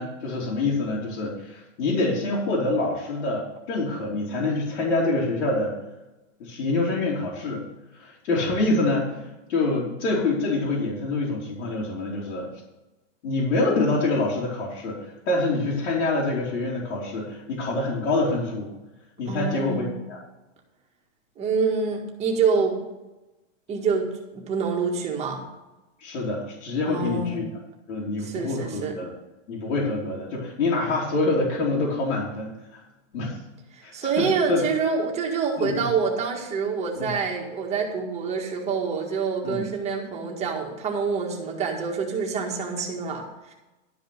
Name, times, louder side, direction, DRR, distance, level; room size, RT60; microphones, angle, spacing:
voice 1, 0.0-5.7 6.4-7.6 7.9-12.5 13.2-18.7 19.2-20.2 26.0-27.4 27.9-29.1 29.5-32.8 33.1-33.4 33.8-34.6 35.6-35.9 37.0-37.1 39.4-39.7, left 2 dB, 75° left, -7 dB, 3.7 m, -26 dB
voice 2, 19.3-20.0 21.4-22.8 23.7-25.4 26.8-27.4 28.2-29.0 33.7-43.5, right 5 dB, 15° right, 0 dB, 1.8 m, -26 dB
12.0 x 5.3 x 8.1 m, 1.0 s
supercardioid pair, 160°, 38 cm